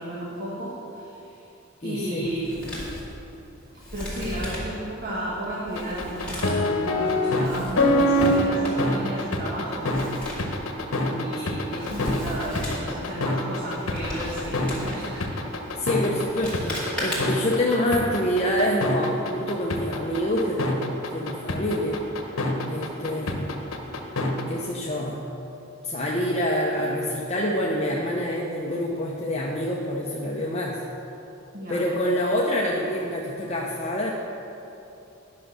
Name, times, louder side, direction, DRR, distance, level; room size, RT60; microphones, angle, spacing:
voice 1, 0.0-1.4 1.8-2.8 3.9-9.9 10.4-10.7 11.1-15.3 31.5-31.8, right 1 dB, 55° right, -6 dB, 1.6 m, -33 dB
voice 2, 1.8-2.3 10.6-10.7 15.5-22.0 22.7-23.7 24.5-25.2 25.8-30.8 31.7-34.1, equal, 30° left, -3 dB, 0.8 m, -26 dB
Male speech man speaking, 2.2-17.6, left 1 dB, 5° left, 2.5 m, -38 dB
sound 1, 5.8-24.4, left 1 dB, 80° left, 1.1 m, -25 dB
10.5 x 6.1 x 6.2 m, 3.0 s
head